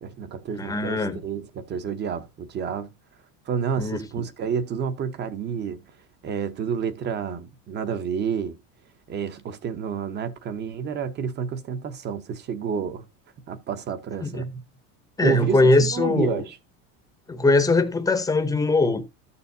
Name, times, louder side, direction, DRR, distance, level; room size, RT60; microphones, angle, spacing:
voice 1, 0.0-2.9 3.5-5.8 6.2-8.6 9.1-13.0 13.5-14.5 15.2-16.6, right 7 dB, 30° right, 0.8 m, -29 dB
voice 2, 0.6-1.2 3.8-4.0 14.2-14.6 15.2-16.4 17.3-19.1, left 2 dB, 10° left, 0.7 m, -21 dB
13.5 x 6.9 x 2.7 m
cardioid pair, 155°, 37 cm